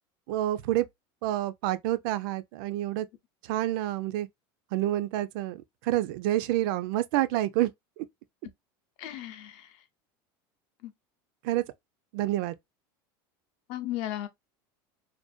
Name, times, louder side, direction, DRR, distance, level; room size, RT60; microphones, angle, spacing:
voice 1, 0.3-0.9 1.2-3.1 3.4-4.3 4.7-7.7 8.0-8.1 11.4-11.6 12.1-12.6, right 14 dB, 70° right, 0.4 m, -28 dB
voice 2, 9.0-9.7 10.8-10.9 13.7-14.3, left 13 dB, 55° left, 0.6 m, -35 dB
2.5 x 2.1 x 2.3 m
supercardioid pair, 135°, 12 cm